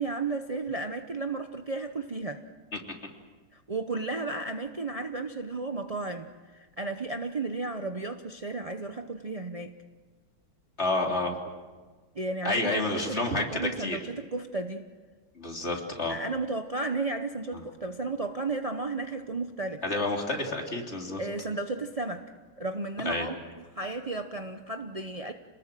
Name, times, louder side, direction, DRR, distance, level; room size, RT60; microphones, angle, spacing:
voice 1, 0.0-2.4 3.5-9.7 12.1-14.8 16.1-19.8 21.2-22.2 22.6-25.3, right 3 dB, 60° right, 6 dB, 0.3 m, -33 dB
voice 2, 10.8-11.4 12.4-14.0 15.4-16.2 19.8-21.2 23.1-23.3, left 2 dB, 30° left, 0 dB, 3.5 m, -29 dB
28.0 x 19.5 x 7.6 m, 1.4 s
omnidirectional pair, 2.2 m